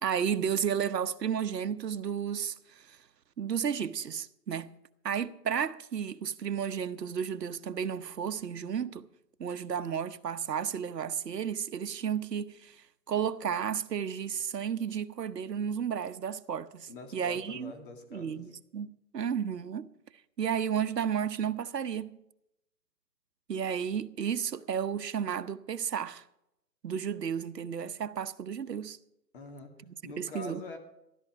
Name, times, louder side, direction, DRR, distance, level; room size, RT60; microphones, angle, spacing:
voice 1, 0.0-3.0 3.4-4.7 5.0-9.1 9.4-12.8 13.1-17.7 18.1-19.9 20.4-22.1 23.5-26.2 26.8-29.0 29.9-30.6, right 8 dB, 75° right, 1.0 m, -33 dB
voice 2, 16.9-18.5 29.3-29.7 30.0-30.8, left 3 dB, 30° left, 2.2 m, -44 dB
13.5 x 13.0 x 5.0 m
hypercardioid pair, 155°, 49 cm